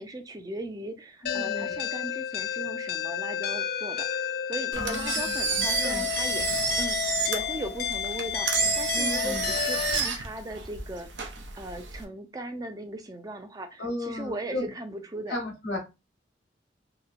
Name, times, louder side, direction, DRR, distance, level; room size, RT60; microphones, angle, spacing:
voice 1, 0.0-6.5 6.8-11.1 11.6-15.4, right 1 dB, 20° right, 0.4 m, -38 dB
voice 2, 1.2-1.7 4.8-5.3 5.8-6.1 8.9-9.5 13.8-14.7 15.3-15.8, left 1 dB, 85° left, 1.1 m, -34 dB
sound 1, 1.3-10.0, left 8 dB, 55° left, 0.4 m, -31 dB
Engine, 4.7-12.0, right 5 dB, 90° right, 0.7 m, -30 dB
3.0 x 2.9 x 2.4 m
head